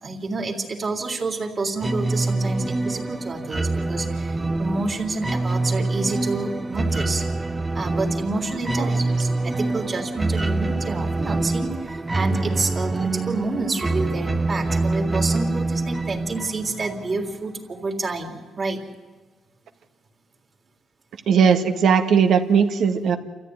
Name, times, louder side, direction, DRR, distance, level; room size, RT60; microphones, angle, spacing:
voice 1, 0.0-7.2 7.7-18.8, right 3 dB, 35° right, 2 dB, 3.4 m, -29 dB
sound 1, 1.8-17.3, right 2 dB, 20° right, 0.9 m, -25 dB
voice 2, 21.3-23.2, right 6 dB, 70° right, 6 dB, 1.7 m, -18 dB
28.5 x 14.0 x 9.5 m, 1.3 s
cardioid pair, 90°, 0 cm